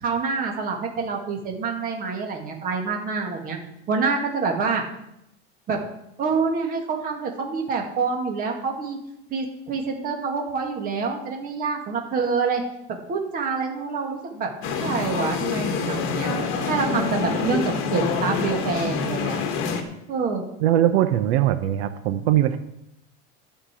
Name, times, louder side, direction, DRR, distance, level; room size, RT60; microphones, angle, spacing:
voice 1, 0.0-3.6 3.9-4.8 5.7-5.8 6.2-9.0 9.3-12.6 12.9-14.5 14.8-16.3 16.7-19.4 20.1-20.4, right 5 dB, 25° right, 2 dB, 2.0 m, -26 dB
sound 1, 14.6-19.8, left 5 dB, 40° left, 1.6 m, -26 dB
voice 2, 20.6-22.6, right 12 dB, 80° right, 9 dB, 0.9 m, -20 dB
11.5 x 5.6 x 8.2 m, 0.83 s
supercardioid pair, 165°, 32 cm